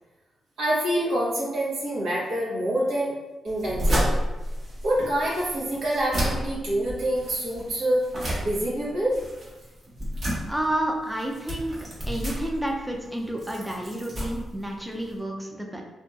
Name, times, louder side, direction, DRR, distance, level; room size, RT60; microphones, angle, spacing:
voice 1, 0.6-3.1 3.4-4.1 4.8-8.1 8.4-9.2, right 1 dB, 90° right, -6 dB, 0.9 m, -26 dB
sound 1, 3.5-15.2, equal, 45° right, 1.0 m, -31 dB
voice 2, 10.5-11.8 12.1-15.8, right 1 dB, 5° right, 0 dB, 0.4 m, -30 dB
2.9 x 2.5 x 2.3 m, 1.1 s
cardioid pair, 100°, 0 cm